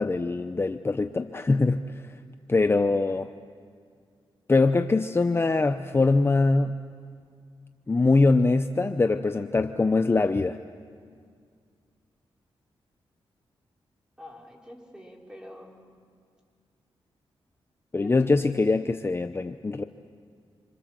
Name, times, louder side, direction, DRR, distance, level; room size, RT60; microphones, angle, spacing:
voice 1, 0.0-2.1 2.5-3.3 4.5-6.7 7.9-10.6 17.9-19.8, left 3 dB, 25° left, 9 dB, 0.7 m, -23 dB
voice 2, 14.2-15.8 18.0-18.5, equal, 10° right, 0 dB, 4.9 m, -45 dB
27.0 x 26.5 x 7.6 m, 2.1 s
cardioid pair, 80°, 10 cm